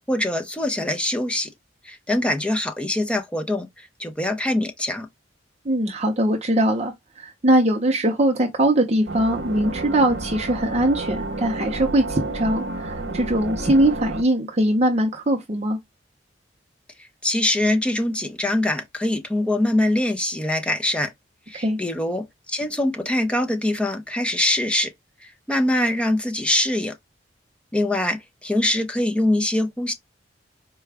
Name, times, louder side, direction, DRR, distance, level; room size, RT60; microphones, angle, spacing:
voice 1, 0.1-1.5 1.8-5.1 17.0-21.1 21.5-24.9 25.2-26.9 27.7-29.9, left 1 dB, 5° left, 0.6 m, -23 dB
voice 2, 5.6-15.8 21.5-21.8, right 1 dB, 35° right, 0.6 m, -21 dB
sound 1, 9.1-14.2, right 2 dB, 80° right, 0.8 m, -31 dB
4.6 x 2.2 x 3.3 m
head